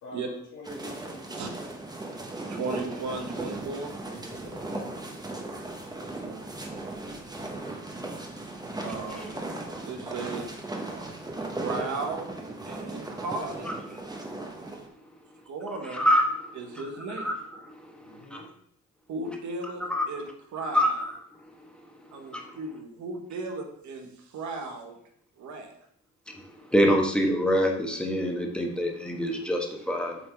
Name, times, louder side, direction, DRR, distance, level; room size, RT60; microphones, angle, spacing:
voice 1, 0.0-1.5 4.2-4.6 18.0-18.5, left 2 dB, 80° left, -5 dB, 2.1 m, -46 dB
sound 1, 0.6-14.9, right 2 dB, 15° right, 1.1 m, -37 dB
voice 2, 2.5-3.9 6.0-6.4 8.8-9.4 9.9-10.5 11.6-12.3 12.6-13.8 15.5-16.1 16.5-17.3 19.1-21.0 22.1-25.0 25.4-25.8, right 3 dB, 70° right, 3 dB, 1.3 m, -36 dB
voice 3, 15.9-16.3 17.2-17.4 18.3-18.5 19.9-20.0 20.7-21.1 22.3-22.4 26.7-30.2, equal, 5° left, 1 dB, 1.2 m, -25 dB
7.8 x 3.8 x 3.4 m, 0.68 s
cardioid pair, 90°, 30 cm